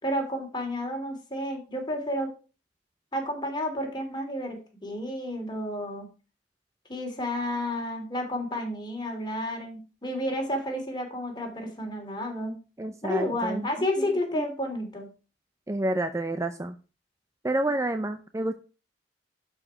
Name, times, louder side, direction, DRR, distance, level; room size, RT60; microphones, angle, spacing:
voice 1, 0.0-2.3 3.1-6.1 6.9-12.6 13.0-15.1, left 1 dB, 25° left, 3 dB, 2.8 m, -31 dB
voice 2, 12.8-13.7 14.0-14.1 14.3-14.4 15.7-16.7 17.4-18.6, right 1 dB, 15° right, 9 dB, 0.5 m, -29 dB
11.5 x 5.1 x 4.8 m, 0.34 s
head